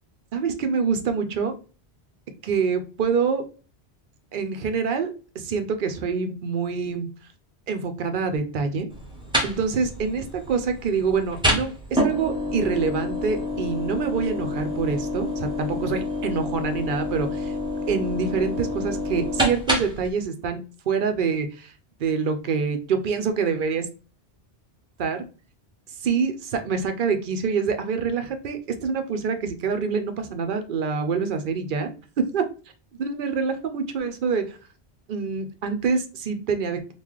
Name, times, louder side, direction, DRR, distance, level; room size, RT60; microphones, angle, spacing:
voice 1, 0.3-1.6 2.4-3.4 4.3-7.1 7.7-8.9 9.4-17.5 17.9-21.7 22.0-23.9 25.0-25.2 26.0-32.4 33.0-34.6 35.1-36.9, right 5 dB, 60° right, 7 dB, 0.7 m, -26 dB
sound 1, 8.9-20.1, left 1 dB, 5° right, 0.7 m, -28 dB
3.8 x 2.4 x 3.0 m, 0.35 s
omnidirectional pair, 1.1 m